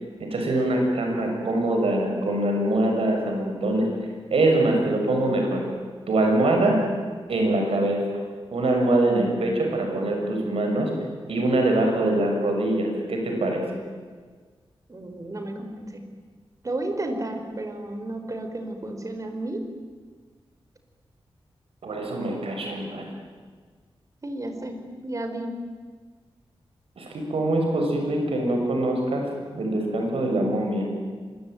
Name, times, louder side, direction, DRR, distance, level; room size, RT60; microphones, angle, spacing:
voice 1, 0.2-3.9 4.3-5.6 6.1-6.8 7.3-8.2 8.5-10.9 11.3-13.6 21.8-23.1 27.0-29.3 29.5-30.9, right 1 dB, 85° right, 2 dB, 6.5 m, -23 dB
voice 2, 14.9-16.0 16.6-19.6 24.2-24.8 25.0-25.5, right 1 dB, 35° right, 6 dB, 4.6 m, -32 dB
26.0 x 23.0 x 9.3 m, 1.5 s
wide cardioid pair, 95°, 10 cm